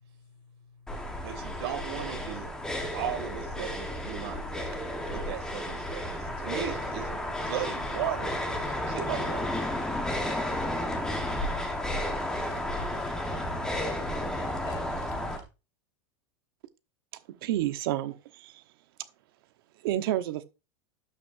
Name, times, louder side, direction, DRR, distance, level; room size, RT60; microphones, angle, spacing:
voice 1, 0.0-1.5 5.9-6.2 11.9-15.4, left 5 dB, 35° left, 4.8 m, -51 dB
sound 1, 0.9-15.4, left 1 dB, 5° left, 1.3 m, -32 dB
voice 2, 1.2-2.5 2.9-4.7 5.1-9.4, right 10 dB, 80° right, 2.6 m, -37 dB
sound 2, 6.3-15.4, left 4 dB, 60° left, 4.1 m, -49 dB
voice 3, 17.4-18.6 19.8-20.4, right 13 dB, 65° right, 1.1 m, -30 dB
12.0 x 6.2 x 2.6 m
supercardioid pair, 165°, 13 cm